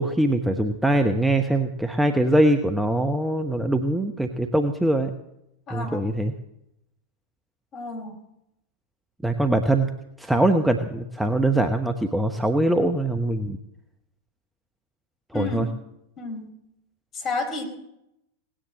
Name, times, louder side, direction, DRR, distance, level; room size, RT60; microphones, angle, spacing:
voice 1, 0.0-5.1 5.7-6.3 9.2-9.9 10.2-13.6 15.3-15.7, right 1 dB, 5° right, 6 dB, 1.0 m, -22 dB
voice 2, 5.7-6.0 7.7-8.2 15.3-15.7 16.2-16.5 17.1-17.6, left 3 dB, 30° left, 4 dB, 4.3 m, -31 dB
18.0 x 10.0 x 7.6 m, 0.83 s
figure-of-eight pair, 90°, 0 cm